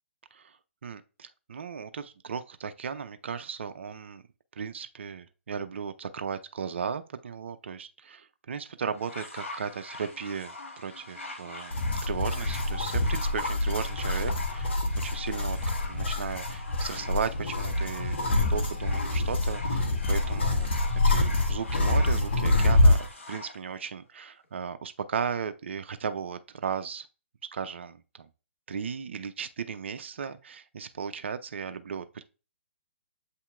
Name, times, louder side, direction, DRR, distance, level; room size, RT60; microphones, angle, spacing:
voice 1, 0.8-4.2 4.5-18.2 18.5-20.7 21.0-27.1 27.5-28.3 28.7-32.2, right 6 dB, 60° right, 0.5 m, -36 dB
sound 1, 9.0-23.6 24.4-24.5, left 2 dB, 80° left, 1.4 m, -43 dB
sound 2, 11.7-23.1, left 2 dB, 55° left, 1.0 m, -26 dB
8.1 x 2.8 x 2.3 m
figure-of-eight pair, 130°, 7 cm